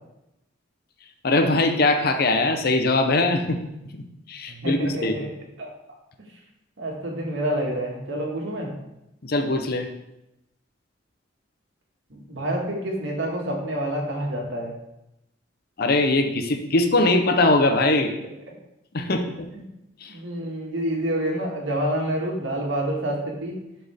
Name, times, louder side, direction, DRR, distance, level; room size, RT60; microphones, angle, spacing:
voice 1, 1.2-3.6 3.9-5.2 9.2-9.9 15.8-18.1 18.9-19.2 20.0-20.1, left 2 dB, 55° left, 6 dB, 0.8 m, -21 dB
voice 2, 4.5-5.3 5.6-5.7 6.8-8.7 12.1-14.7 19.5-19.6 20.1-23.6, right 1 dB, 80° right, -1 dB, 1.8 m, -28 dB
11.0 x 4.4 x 3.5 m, 0.90 s
head